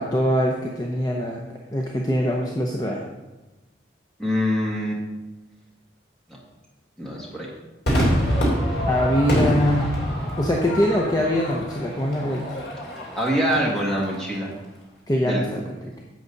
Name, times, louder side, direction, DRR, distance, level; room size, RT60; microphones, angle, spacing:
voice 1, 0.0-1.4 1.7-3.0 8.9-9.9 10.4-12.4 15.1-15.9, equal, 20° left, -1 dB, 0.8 m, -23 dB
voice 2, 4.2-5.0 7.0-7.5 13.1-14.6 15.3-15.4, equal, 5° left, -4 dB, 2.0 m, -24 dB
Crowd / Fireworks, 7.9-14.4, equal, 70° left, 3.4 m, -26 dB
11.0 x 7.8 x 4.0 m, 1.1 s
head